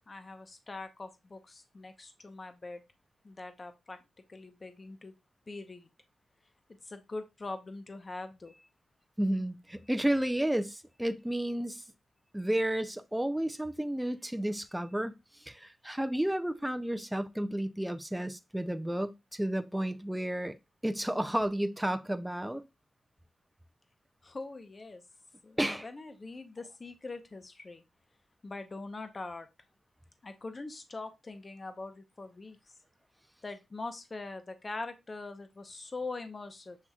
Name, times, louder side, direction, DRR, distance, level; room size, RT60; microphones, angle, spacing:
voice 1, 0.1-2.8 3.2-4.0 4.3-5.1 5.5-5.9 6.8-8.5 24.2-25.0 25.4-27.8 28.4-29.5 30.2-32.6 33.4-36.8, left 3 dB, 30° left, 0.7 m, -42 dB
voice 2, 9.2-11.8 12.3-15.2 15.4-20.6 20.8-22.6 25.6-25.9, right 1 dB, 5° right, 0.4 m, -32 dB
7.3 x 2.9 x 2.3 m
cardioid pair, 90°, 0 cm